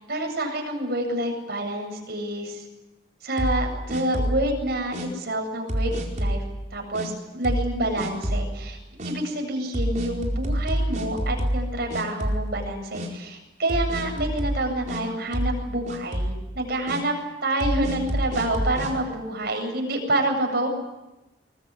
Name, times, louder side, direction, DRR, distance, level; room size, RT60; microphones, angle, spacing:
voice 1, 0.1-2.6 3.2-6.4 6.7-8.8 9.0-17.1 17.4-20.7, right 1 dB, 60° right, 3 dB, 7.7 m, -28 dB
sound 1, 3.4-4.5 4.9-5.1 5.7-6.4 6.9-7.1 7.4-7.7 8.0-8.5 9.0-9.1 9.7-11.7 11.9-12.6 12.9-13.1 13.7-15.0 15.3-15.6 15.9-16.4 16.9-17.0 17.6-18.9, equal, 45° right, 4.6 m, -27 dB
24.0 x 20.5 x 9.9 m, 1.0 s
head